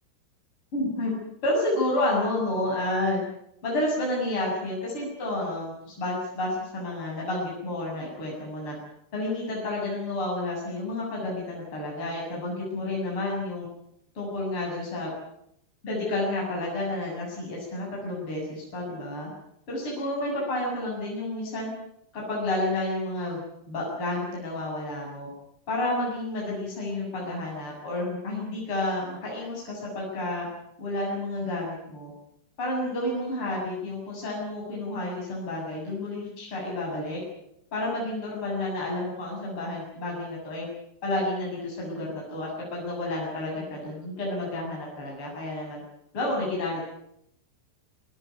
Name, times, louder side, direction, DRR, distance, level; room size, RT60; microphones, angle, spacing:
voice 1, 0.7-1.1 1.4-3.2 3.6-8.8 9.1-13.7 14.1-15.1 15.8-19.3 19.7-21.7 22.1-25.3 25.7-30.5 30.8-32.1 32.6-37.2 37.7-40.7 41.0-45.8 46.1-46.9, left 1 dB, 25° left, -3 dB, 8.3 m, -30 dB
23.0 x 20.0 x 9.6 m, 0.76 s
omnidirectional pair, 5.3 m